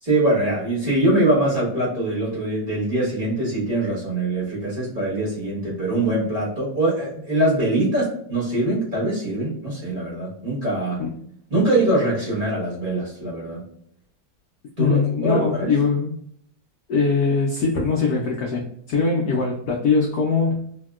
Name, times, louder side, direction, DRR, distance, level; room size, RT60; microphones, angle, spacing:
voice 1, 0.0-11.0 11.5-13.6 14.8-15.7, right 1 dB, 30° right, -8 dB, 1.1 m, -23 dB
voice 2, 14.8-16.2 16.9-20.6, left 4 dB, 80° left, -1 dB, 0.8 m, -22 dB
2.9 x 2.7 x 2.3 m, 0.69 s
omnidirectional pair, 2.2 m